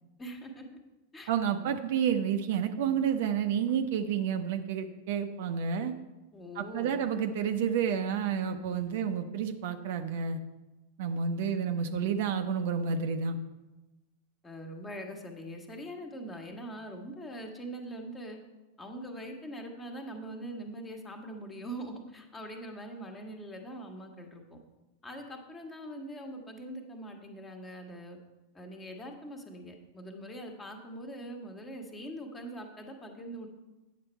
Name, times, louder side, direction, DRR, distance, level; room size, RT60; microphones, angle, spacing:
voice 1, 0.2-0.7 1.1-1.3 6.3-7.0 11.5-11.6 14.4-18.4 18.8-24.6 25.0-28.2 28.5-33.5, right 1 dB, 15° left, 3 dB, 1.4 m, -42 dB
voice 2, 1.3-5.9 6.5-10.4 11.0-13.4, right 7 dB, 50° right, 7 dB, 0.6 m, -30 dB
9.3 x 6.7 x 4.4 m, 1.1 s
figure-of-eight pair, 90°, 0 cm